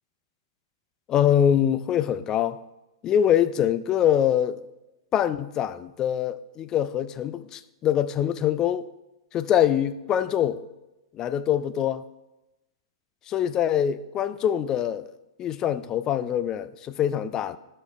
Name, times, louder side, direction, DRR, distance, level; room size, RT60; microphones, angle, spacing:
voice 1, 1.1-2.6 3.0-4.6 5.1-8.9 9.3-10.6 11.1-12.0 13.3-15.1 15.4-17.6, left 10 dB, 25° left, 0.3 m, -24 dB
12.5 x 6.5 x 2.4 m
figure-of-eight pair, 105°, 2 cm